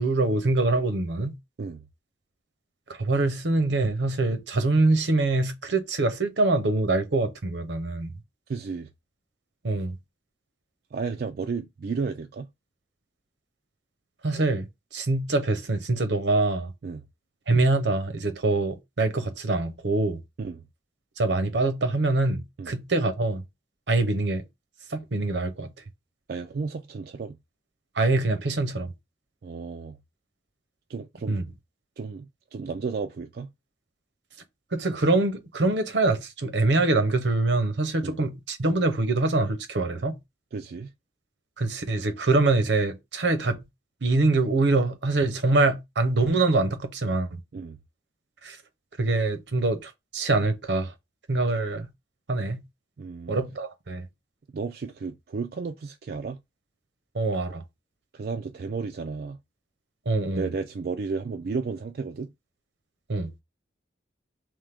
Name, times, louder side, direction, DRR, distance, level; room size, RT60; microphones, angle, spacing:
voice 1, 0.0-1.4 2.9-8.2 9.6-10.0 14.2-16.7 17.5-20.2 21.2-23.4 23.9-24.4 24.9-25.7 27.9-28.9 31.3-31.4 34.7-40.2 41.6-43.6 44.0-47.4 48.4-48.6 49.0-50.9 51.3-51.9 52.3-52.6 53.3-54.1 57.1-57.6 60.1-60.5 63.1-63.3, right 2 dB, 75° right, 0.8 m, -24 dB
voice 2, 8.5-8.9 10.9-12.5 16.8-17.0 20.4-20.6 22.6-22.7 26.3-27.4 29.4-30.0 30.9-31.4 32.0-33.5 38.0-38.2 40.5-40.9 47.5-47.8 53.0-53.4 54.5-56.4 58.1-59.4 60.3-62.3, right 4 dB, 55° right, 0.3 m, -33 dB
3.6 x 3.1 x 3.5 m
head